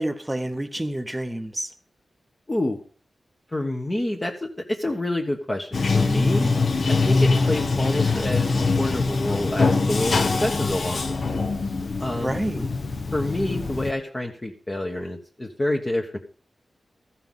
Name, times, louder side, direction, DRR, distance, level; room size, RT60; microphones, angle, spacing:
voice 1, 0.0-1.7 8.1-8.2 12.2-12.7, right 1 dB, 10° right, 0.9 m, -28 dB
voice 2, 2.5-2.8 3.5-6.5 6.9-11.4 12.0-12.4 13.1-16.2, left 1 dB, 20° left, 1.1 m, -28 dB
Bathtub (filling or washing), 5.7-13.9, left 3 dB, 45° left, 0.9 m, -23 dB
14.5 x 5.7 x 7.4 m
wide cardioid pair, 175°, 0 cm